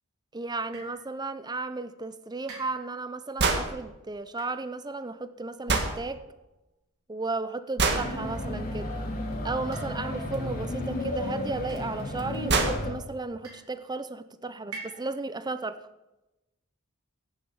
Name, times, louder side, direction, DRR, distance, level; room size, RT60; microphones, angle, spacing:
voice 1, 0.3-6.2 7.1-8.9 9.4-15.8, right 3 dB, 20° right, 12 dB, 0.7 m, -34 dB
sound 1, 0.7-1.1 2.5-3.1 4.3-4.6 5.8-6.4 7.9-8.7 9.7-10.3 11.7-12.3 13.4-14.0 14.7-15.4, right 3 dB, 90° right, 3.8 m, -46 dB
sound 2, 3.4-3.7 5.7-5.9 7.8-8.1 10.3-10.4 11.8-11.9 12.2-12.3 12.5-12.8, right 4 dB, 55° right, 1.7 m, -24 dB
sound 3, 7.9-12.9, left 1 dB, 45° left, 2.7 m, -33 dB
16.0 x 7.1 x 7.1 m, 0.98 s
head